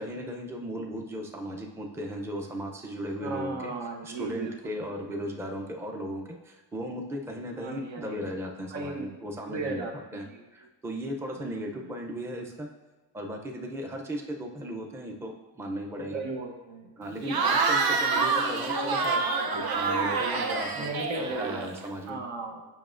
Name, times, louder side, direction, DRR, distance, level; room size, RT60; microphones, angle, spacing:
voice 1, 0.0-3.7 4.0-9.9 10.1-10.3 10.5-12.7 13.1-16.2 17.0-20.9 21.2-22.2, equal, 5° right, 2 dB, 0.5 m, -36 dB
voice 2, 3.2-4.5 7.6-8.3 8.7-9.2 9.5-10.4 11.4-11.5 16.0-16.9 17.2-17.6 20.7-21.7 22.1-22.6, right 3 dB, 75° right, 3 dB, 1.0 m, -36 dB
Cheering / Crowd, 17.2-21.9, right 4 dB, 55° right, 0.6 m, -27 dB
7.0 x 5.6 x 2.5 m, 1.2 s
wide cardioid pair, 115°, 45 cm